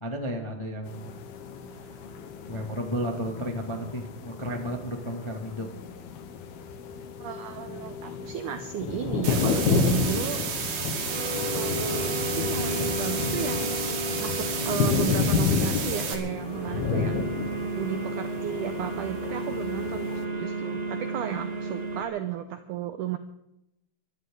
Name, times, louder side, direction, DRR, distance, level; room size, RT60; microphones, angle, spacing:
voice 1, 0.0-1.1 1.7-2.0 2.5-5.7, equal, 20° left, 2 dB, 0.7 m, -33 dB
sound 1, 0.9-20.2, left 6 dB, 75° left, 3.2 m, -31 dB
voice 2, 7.2-10.4 11.5-13.8 14.2-17.3 17.7-23.2, right 10 dB, 90° right, 9 dB, 1.8 m, -34 dB
sound 2, 9.2-16.2, right 6 dB, 70° right, 4.1 m, -32 dB
sound 3, 11.1-22.0, right 1 dB, 25° right, 1.4 m, -33 dB
23.5 x 14.0 x 3.9 m, 0.84 s
omnidirectional pair, 4.6 m